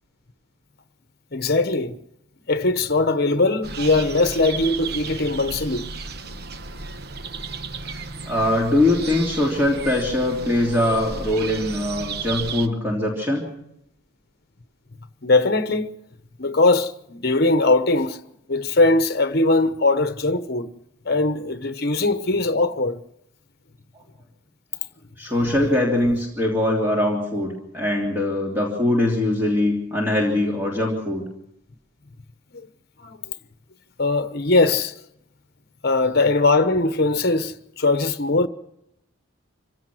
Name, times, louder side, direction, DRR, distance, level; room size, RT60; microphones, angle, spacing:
voice 1, 1.3-1.9 2.5-5.9 15.2-15.9 16.4-18.2 18.5-20.7 21.0-23.0 32.5-32.7 33.0-33.3 34.0-34.9 35.8-38.5, left 2 dB, 50° left, 1.1 m, -20 dB
sound 1, 3.6-12.7, right 4 dB, 50° right, 1.1 m, -34 dB
voice 2, 8.3-13.4 25.2-31.3, left 1 dB, 10° right, 3.1 m, -22 dB
25.5 x 16.5 x 6.3 m
head